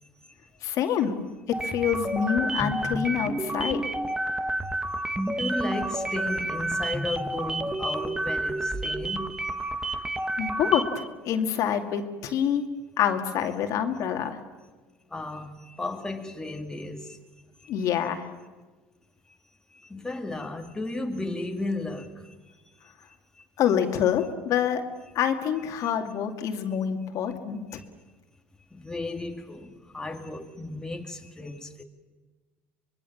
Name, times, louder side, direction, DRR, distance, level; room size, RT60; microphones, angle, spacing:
voice 1, 0.6-1.2 1.6-3.9 10.4-12.7 13.0-14.4 17.7-18.3 23.6-24.8 25.1-27.6, left 9 dB, 60° left, 2.4 m, -26 dB
sound 1, 1.5-11.1, right 2 dB, 10° right, 1.5 m, -30 dB
voice 2, 5.2-9.7 10.2-10.3 15.1-17.2 17.6-17.9 19.7-22.4 23.3-23.4 27.7-27.9 28.7-31.8, left 2 dB, 10° left, 2.3 m, -34 dB
24.5 x 22.5 x 7.3 m
supercardioid pair, 90°, 6 cm